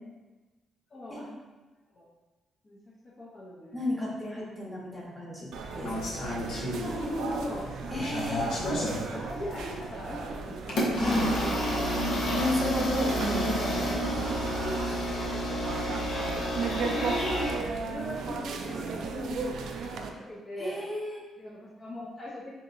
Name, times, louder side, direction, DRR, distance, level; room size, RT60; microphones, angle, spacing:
voice 1, 0.9-1.3 2.0-2.1 2.6-2.8 3.2-3.8 6.8-7.7 8.4-10.8 12.7-13.2 14.2-14.8 16.7-17.5 17.8-20.8 21.4-22.5, left 1 dB, 35° left, -6 dB, 0.6 m, -39 dB
voice 2, 3.7-5.5 5.7-5.9 6.2-6.3 7.9-8.5 11.0-11.3 12.3-14.1 20.6-21.2, left 1 dB, 5° left, -5 dB, 1.0 m, -32 dB
sound 1, 5.5-20.1, right 4 dB, 75° right, 0.3 m, -36 dB
sound 2, 5.8-7.3 7.7-9.0 9.7-9.9 10.7-17.6, equal, 80° left, 0.7 m, -30 dB
3.7 x 2.8 x 2.5 m, 1.2 s
cardioid pair, 90°, 0 cm